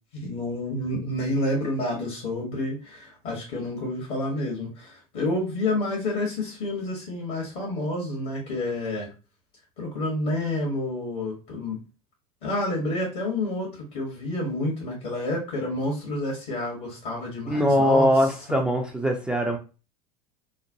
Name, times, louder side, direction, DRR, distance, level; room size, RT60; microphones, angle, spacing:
voice 1, 0.1-9.1 9.8-11.8 12.4-18.1, left 1 dB, 55° left, -1 dB, 1.2 m, -29 dB
voice 2, 17.5-19.6, equal, 5° right, 1 dB, 0.4 m, -21 dB
3.1 x 2.0 x 2.6 m, 0.33 s
figure-of-eight pair, 80°, 20 cm